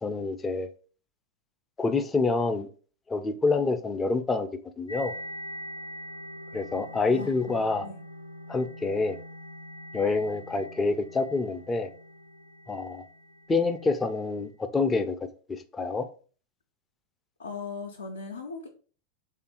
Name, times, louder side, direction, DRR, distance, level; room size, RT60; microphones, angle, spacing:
voice 1, 0.0-0.7 1.8-2.7 3.1-4.5 4.8-5.1 6.5-7.9 8.5-9.2 9.9-11.9 12.7-13.0 13.5-15.2 15.5-16.1, left 3 dB, 15° left, 0.4 m, -27 dB
sound 1, 4.9-14.4, equal, 90° right, 0.5 m, -43 dB
voice 2, 17.4-18.7, left 4 dB, 75° left, 0.4 m, -38 dB
3.4 x 2.5 x 4.2 m
figure-of-eight pair, 90°, 0 cm